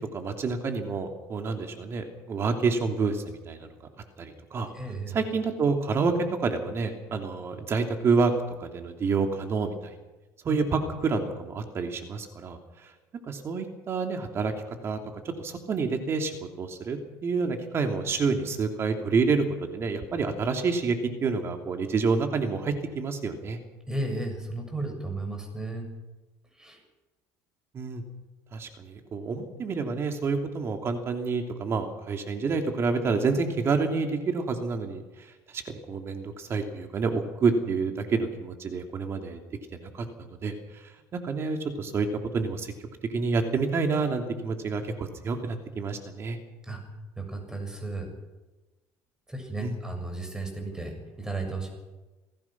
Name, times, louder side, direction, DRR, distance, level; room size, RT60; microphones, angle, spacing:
voice 1, 0.1-3.7 4.2-4.7 5.1-6.1 6.4-8.3 8.6-9.9 10.4-12.9 13.2-14.5 14.8-15.0 15.4-16.3 16.6-23.6 27.7-28.0 28.5-39.4 39.8-40.0 40.4-42.1 42.3-42.7 43.1-46.4 49.6-49.8, right 4 dB, 35° right, 5 dB, 3.1 m, -28 dB
voice 2, 4.7-5.2 10.5-10.6 23.9-25.9 26.6-26.8 46.6-46.8 47.2-48.1 49.3-51.7, right 2 dB, 10° right, 3 dB, 6.9 m, -34 dB
28.5 x 16.5 x 6.1 m, 1.1 s
supercardioid pair, 115°, 7 cm